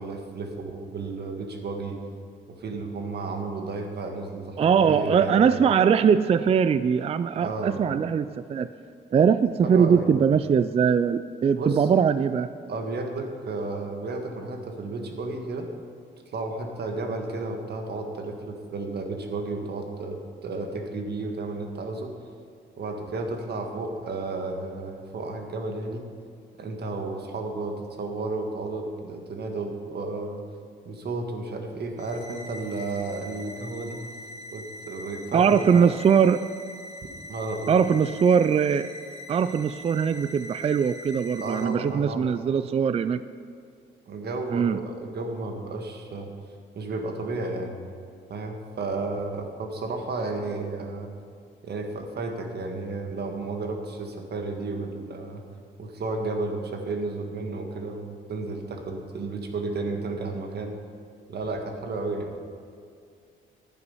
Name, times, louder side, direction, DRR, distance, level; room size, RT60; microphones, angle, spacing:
voice 1, 0.0-2.0 2.6-5.4 7.4-7.8 9.6-10.1 11.5-11.9 12.7-15.7 16.3-22.1 22.8-26.1 26.6-30.4 30.8-34.0 34.5-35.9 37.3-37.8 41.4-42.3 44.1-46.3 46.7-47.8 48.3-51.1 51.6-55.4 55.8-60.7 61.3-62.3, right 3 dB, 55° right, 3 dB, 1.7 m, -32 dB
voice 2, 4.6-8.7 9.1-12.5 35.3-36.4 37.7-38.9 39.3-43.2 44.5-44.8, right 7 dB, 30° right, 13 dB, 0.3 m, -21 dB
sound 1, 32.0-41.6, left 1 dB, 35° left, 2.5 m, -43 dB
11.0 x 9.1 x 5.5 m, 2.3 s
cardioid pair, 90°, 20 cm